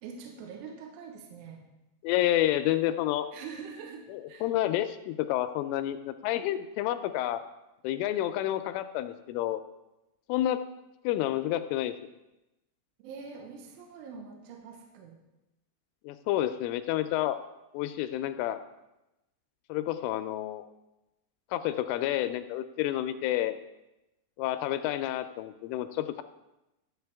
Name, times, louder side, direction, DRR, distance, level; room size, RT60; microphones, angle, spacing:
voice 1, 0.0-1.6 3.3-4.5 13.0-15.2, right 6 dB, 80° right, 2 dB, 3.5 m, -44 dB
voice 2, 2.0-3.3 4.1-7.4 7.8-9.6 10.3-10.6 11.0-11.9 16.1-17.4 17.7-18.6 19.7-20.6 21.5-23.6 24.4-26.2, left 13 dB, 85° left, 10 dB, 3.0 m, -29 dB
14.5 x 8.5 x 3.5 m, 0.96 s
omnidirectional pair, 5.8 m